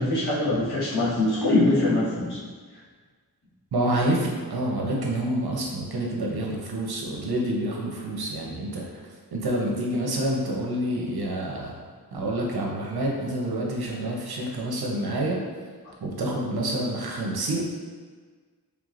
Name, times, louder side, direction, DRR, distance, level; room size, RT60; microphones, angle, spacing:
voice 1, 0.0-2.4, left 2 dB, 85° left, -9 dB, 1.5 m, -23 dB
voice 2, 3.7-9.0 9.3-11.7 12.1-15.4 16.0-17.6, right 1 dB, 75° right, -1 dB, 0.9 m, -28 dB
4.7 x 3.3 x 2.5 m, 1.5 s
wide cardioid pair, 65°, 38 cm